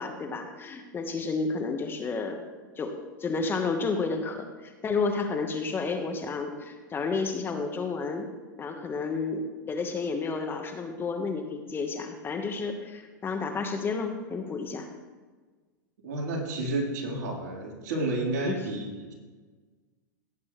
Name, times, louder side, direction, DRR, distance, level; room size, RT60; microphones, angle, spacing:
voice 1, 0.0-2.4 2.8-8.3 8.6-14.9 18.5-18.6, left 4 dB, 20° left, 5 dB, 1.2 m, -31 dB
voice 2, 16.0-19.1, right 2 dB, 65° right, -2 dB, 3.7 m, -31 dB
17.5 x 8.7 x 3.1 m, 1.4 s
hypercardioid pair, 120°, 11 cm